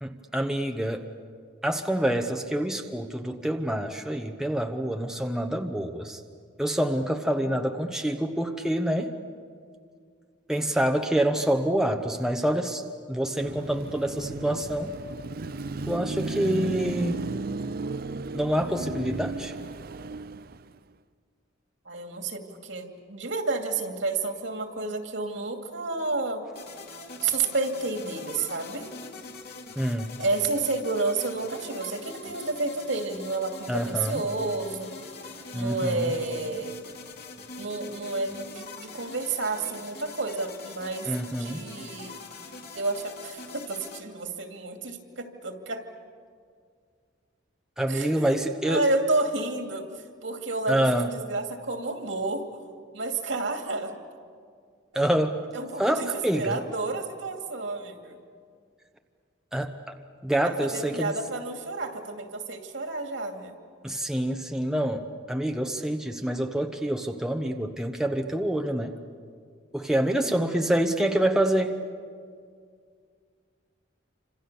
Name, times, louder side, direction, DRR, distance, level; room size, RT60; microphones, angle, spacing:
voice 1, 0.0-1.1 1.6-6.2 6.6-9.1 10.5-12.8 13.1-14.9 15.9-17.2 18.3-19.5 29.8-30.1 33.7-34.2 35.5-36.1 41.1-41.6 47.8-48.8 50.7-51.1 54.9-55.4 55.8-56.6 59.5-59.9 60.2-61.1 63.8-68.9 69.7-71.8, right 1 dB, 5° right, 4 dB, 1.0 m, -27 dB
Car passing by / Traffic noise roadway noise / Engine, 13.4-20.8, right 3 dB, 50° right, 0.6 m, -34 dB
voice 2, 21.8-26.4 27.2-28.9 30.2-34.9 35.5-36.7 37.5-42.2 42.7-45.8 47.9-52.6 52.9-53.9 54.9-55.0 55.5-58.2 60.4-63.5 70.4-70.5, right 3 dB, 70° right, 4 dB, 2.6 m, -30 dB
sound 1, 26.5-44.0, left 3 dB, 50° left, 3.0 m, -43 dB
28.5 x 26.5 x 7.0 m, 2.1 s
head